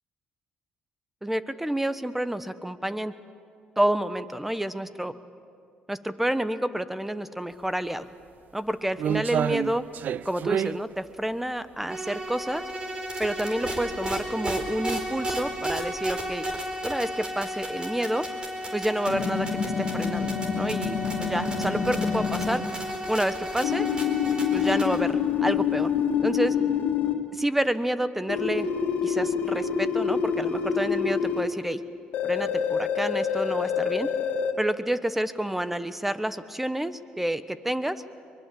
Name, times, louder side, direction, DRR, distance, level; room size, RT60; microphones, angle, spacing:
voice 1, 1.2-3.1 3.8-5.1 5.9-8.1 8.5-9.8 10.2-12.6 13.2-16.4 16.8-18.3 18.7-22.6 23.1-23.9 24.5-25.9 26.2-26.6 27.3-28.7 29.0-31.8 32.2-34.1 34.6-38.0, right 1 dB, 5° right, 12 dB, 1.1 m, -29 dB
sound 1, 7.6-7.7 8.2-13.3 13.6-13.8 14.5-14.6 14.9-15.0 16.0-16.1 16.4-16.5 17.1-17.2 17.5-17.6 19.7-19.8 21.1-21.4 21.8-22.2 22.6-22.8 23.1-23.2 24.3-24.5 25.1-25.8 26.1-26.2, right 9 dB, 60° right, 0.5 m, -30 dB
sound 2, 11.9-25.0, equal, 30° right, 4.4 m, -33 dB
sound 3, 19.1-22.6 23.6-27.1 28.3-31.4 32.1-34.5, left 7 dB, 75° left, 2.3 m, -26 dB
23.5 x 22.0 x 7.7 m, 2.3 s
cardioid pair, 80°, 3 cm